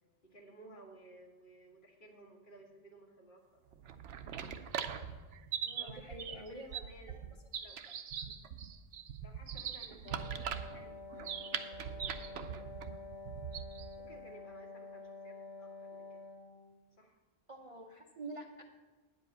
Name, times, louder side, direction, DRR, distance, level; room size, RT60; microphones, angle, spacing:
voice 1, 0.2-3.6 5.8-7.8 9.2-12.8 14.0-16.2 17.0-17.2, right 1 dB, 45° left, 1 dB, 1.5 m, -57 dB
sound 1, 3.7-14.0, right 8 dB, 80° right, 1.0 m, -41 dB
voice 2, 5.6-6.8 7.9-8.2 17.5-18.6, right 2 dB, 35° right, 1 dB, 0.6 m, -48 dB
Wind instrument woodwind instrument, 10.0-16.8, left 3 dB, 65° left, 0.9 m, -49 dB
9.6 x 5.2 x 7.9 m, 1.3 s
omnidirectional pair, 1.2 m